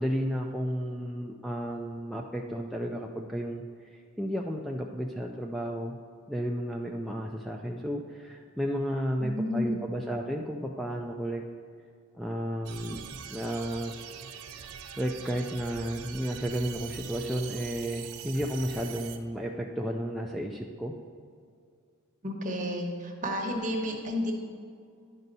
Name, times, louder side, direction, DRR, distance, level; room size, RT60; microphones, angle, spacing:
voice 1, 0.0-5.9 6.3-11.4 12.2-13.0 13.3-13.9 15.0-20.9, equal, ahead, 1 dB, 0.3 m, -33 dB
voice 2, 9.2-9.8 22.2-24.3, left 1 dB, 35° right, 1 dB, 1.1 m, -31 dB
sound 1, 12.6-19.2, right 7 dB, 85° right, 0.6 m, -43 dB
10.5 x 5.3 x 4.0 m, 2.3 s
head